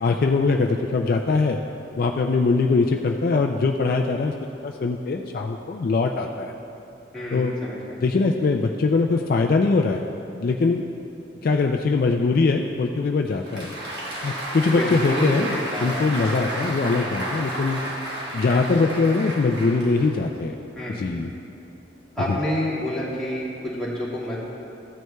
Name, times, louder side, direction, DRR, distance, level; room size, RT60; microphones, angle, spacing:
voice 1, 0.0-1.6 2.0-4.3 4.6-6.5 7.3-7.5 8.0-10.1 10.4-10.9 11.4-13.7 14.2-15.6 15.8-17.8 18.3-20.6 20.9-21.3 22.3-22.4, left 3 dB, 50° left, 2 dB, 0.3 m, -22 dB
voice 2, 7.1-7.9 14.7-16.3 20.8-21.0 22.2-24.4, equal, 5° left, -9 dB, 1.9 m, -29 dB
Applause, 13.3-20.4, right 1 dB, 55° right, 1.4 m, -32 dB
14.0 x 9.2 x 2.3 m, 2.8 s
head